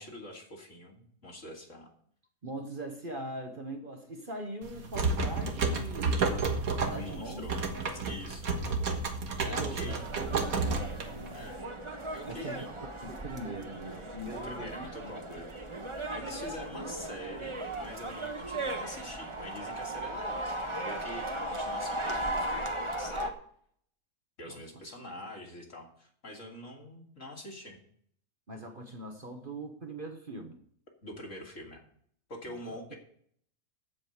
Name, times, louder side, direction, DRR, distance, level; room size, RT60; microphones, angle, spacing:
voice 1, 0.0-1.9 6.9-7.6 8.0-8.5 9.4-10.0 11.3-11.6 12.1-12.7 14.4-15.5 16.0-23.3 24.4-27.8 31.0-31.8 32.3-33.0, left 1 dB, 60° left, -1 dB, 3.2 m, -45 dB
voice 2, 2.4-6.3 6.7-7.5 7.7-7.9 9.6-10.9 12.3-15.5 24.5-24.8 28.5-30.6 32.5-32.9, right 1 dB, 35° right, 4 dB, 1.3 m, -42 dB
sound 1, 4.6-11.5, right 4 dB, 75° right, 1.9 m, -31 dB
sound 2, 9.9-23.3, right 1 dB, 20° right, 1.3 m, -37 dB
14.5 x 5.2 x 7.8 m, 0.63 s
omnidirectional pair, 1.5 m